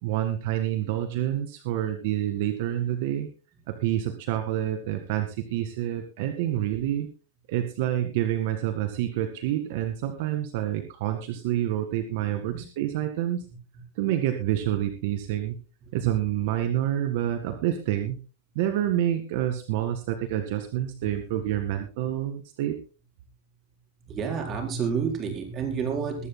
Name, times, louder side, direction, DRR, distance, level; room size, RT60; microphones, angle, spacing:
voice 1, 0.0-3.3 3.7-7.1 7.5-13.5 14.0-15.6 15.9-18.2 18.6-22.8, right 12 dB, 55° right, 6 dB, 1.9 m, -28 dB
voice 2, 13.5-13.8 21.0-21.1 24.1-26.3, right 6 dB, 25° right, 3 dB, 4.4 m, -30 dB
22.0 x 13.0 x 2.2 m, 0.34 s
supercardioid pair, 155°, 0 cm